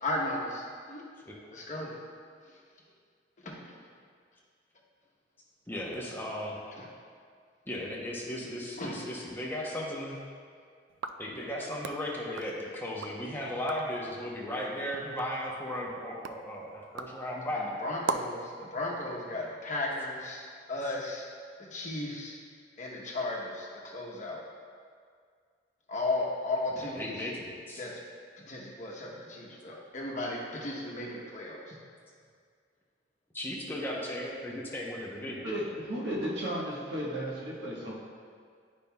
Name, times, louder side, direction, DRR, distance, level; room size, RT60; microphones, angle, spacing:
voice 1, 0.0-1.0 1.5-1.9 3.4-3.7 6.8-6.9 8.8-9.0 17.5-21.3 21.6-22.3 22.8-24.4 25.9-27.2 27.8-28.0 28.4-31.8, left 2 dB, 40° left, -3 dB, 1.0 m, -35 dB
voice 2, 5.7-6.6 7.7-10.2 11.2-17.7 26.7-27.8 33.3-35.4, left 1 dB, 10° left, -4 dB, 0.8 m, -36 dB
sound 1, 10.9-13.2 13.5-14.0 14.5-18.5, right 4 dB, 85° right, 0.3 m, -41 dB
voice 3, 35.4-37.9, equal, 65° right, -5 dB, 1.4 m, -34 dB
10.5 x 5.3 x 2.3 m, 2.1 s
head